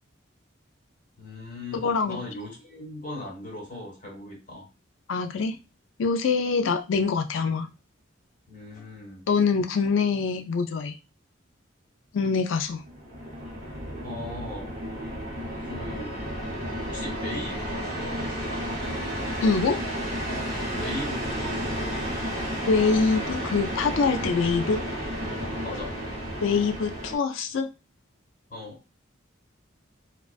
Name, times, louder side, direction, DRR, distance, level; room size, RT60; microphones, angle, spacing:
voice 1, 1.2-4.7 8.5-9.3 14.0-14.7 15.6-16.2 16.9-18.8 20.8-21.8 25.6-26.0 28.5-28.8, left 1 dB, 40° left, -2 dB, 1.1 m, -39 dB
voice 2, 1.8-2.2 5.1-5.6 6.0-7.7 9.3-10.9 12.1-12.8 19.4-19.8 22.7-24.8 26.4-27.7, left 5 dB, 80° left, 7 dB, 0.4 m, -24 dB
sound 1, 12.7-27.2, equal, 45° right, 0.9 m, -32 dB
2.3 x 2.3 x 2.4 m, 0.28 s
head